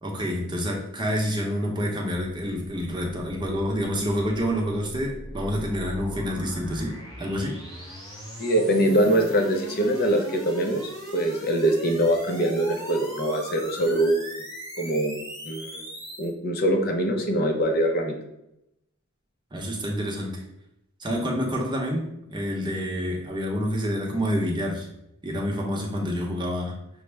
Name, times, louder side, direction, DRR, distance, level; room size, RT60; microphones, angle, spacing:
voice 1, 0.0-7.6 19.5-20.4 21.0-24.9 25.2-26.8, equal, 20° right, -1 dB, 0.8 m, -28 dB
sound 1, 3.2-16.3, equal, 15° left, 1.1 m, -40 dB
voice 2, 8.4-10.8 11.1-14.2 14.8-15.2 15.4-15.8 16.2-18.1, right 1 dB, 50° left, 3 dB, 0.7 m, -23 dB
6.1 x 2.1 x 3.3 m, 0.83 s
head